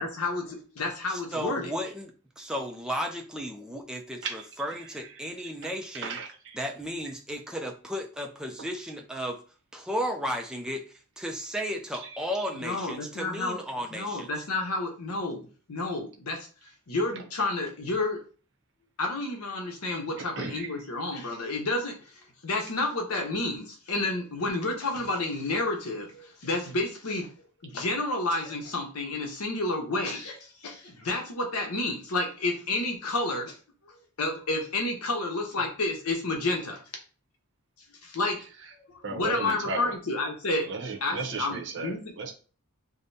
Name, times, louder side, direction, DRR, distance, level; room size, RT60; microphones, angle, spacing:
voice 1, 0.0-1.7 12.6-13.6 13.9-16.5 16.9-18.2 19.0-22.1 22.4-27.3 27.6-33.6 33.9-36.8 38.0-38.4 38.7-40.7 41.0-42.1, left 2 dB, 80° left, 2 dB, 1.0 m, -30 dB
voice 2, 1.1-6.2 6.6-9.4 9.7-10.9 11.2-14.4, equal, 5° right, 2 dB, 0.4 m, -34 dB
voice 3, 4.8-5.2 5.6-6.6 8.6-8.7 11.9-12.2 17.1-17.2 20.2-20.7 39.0-39.9 40.6-42.3, right 4 dB, 55° right, 2 dB, 0.8 m, -36 dB
4.9 x 2.2 x 2.7 m, 0.38 s
head